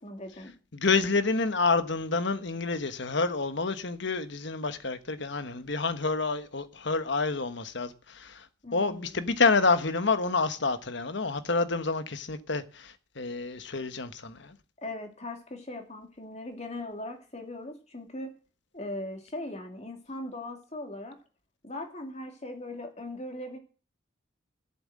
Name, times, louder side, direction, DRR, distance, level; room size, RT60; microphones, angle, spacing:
voice 1, 0.0-0.5 8.6-9.3 14.8-18.3 18.7-21.2 21.6-23.6, left 1 dB, 35° left, 2.6 m, -39 dB
voice 2, 0.7-8.5 8.7-14.6, left 4 dB, 60° left, 1.2 m, -28 dB
14.5 x 7.9 x 7.6 m
head